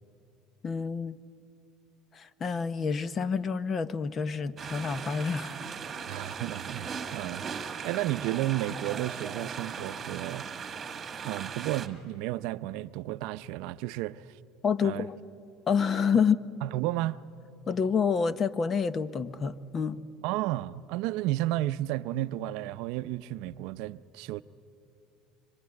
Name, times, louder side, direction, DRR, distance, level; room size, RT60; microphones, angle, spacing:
voice 1, 0.6-1.2 2.1-5.6 14.6-15.1 15.7-16.4 17.7-20.0, left 6 dB, 30° left, 0.8 m, -28 dB
sound 1, 4.6-11.9, right 6 dB, 25° right, 1.8 m, -38 dB
voice 2, 6.1-10.5 11.2-14.4 14.8-15.1 16.6-17.2 20.2-24.4, right 15 dB, 70° right, 0.6 m, -32 dB
24.5 x 24.5 x 9.8 m
cardioid pair, 130°, 0 cm